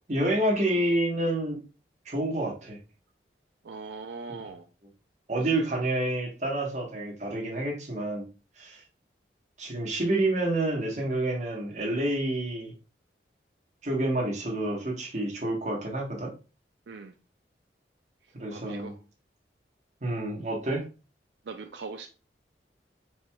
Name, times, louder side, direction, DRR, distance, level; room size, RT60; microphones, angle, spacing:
voice 1, 0.1-1.6 2.0-2.8 4.3-4.4 5.3-8.3 8.6-8.8 9.6-12.7 13.8-16.3 18.4-18.9 20.0-20.9, right 1 dB, 40° right, -1 dB, 1.2 m, -28 dB
voice 2, 3.6-4.7 16.9-17.1 18.5-19.0 21.4-22.1, right 4 dB, 80° right, 5 dB, 0.4 m, -40 dB
4.4 x 4.2 x 2.3 m, 0.33 s
head